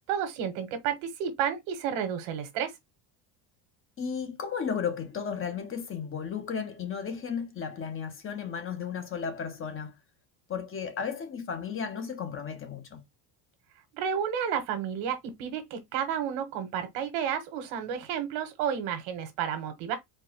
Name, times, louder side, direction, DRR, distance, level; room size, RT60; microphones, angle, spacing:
voice 1, 0.1-2.7 13.9-19.9, right 8 dB, 85° right, 1.5 m, -31 dB
voice 2, 4.0-9.9 10.5-13.0, left 6 dB, 25° left, 0.9 m, -34 dB
4.5 x 2.3 x 4.4 m
cardioid pair, 145°, 49 cm